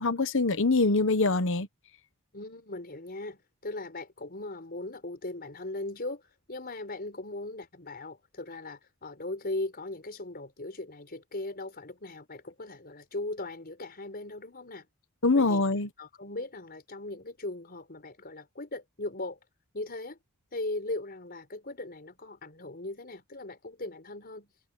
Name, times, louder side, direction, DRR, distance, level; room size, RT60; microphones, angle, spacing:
voice 1, 0.0-1.7 15.2-15.9, left 3 dB, 60° left, 1.2 m, -24 dB
voice 2, 2.3-6.2 6.5-14.9 15.3-15.6 16.0-19.4 19.7-20.2 20.5-24.5, left 2 dB, 45° left, 4.8 m, -38 dB
head